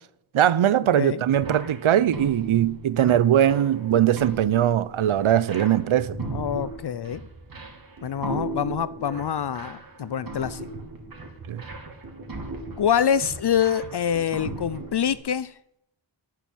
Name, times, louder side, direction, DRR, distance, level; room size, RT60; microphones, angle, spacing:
voice 1, 0.3-6.2 11.5-11.6, right 10 dB, 85° right, 0.8 m, -21 dB
sound 1, 1.4-15.1, right 3 dB, 45° right, 3.1 m, -37 dB
voice 2, 6.3-7.2 8.0-10.7 12.8-15.5, left 8 dB, 55° left, 0.6 m, -25 dB
11.0 x 9.7 x 9.2 m
wide cardioid pair, 125°, 47 cm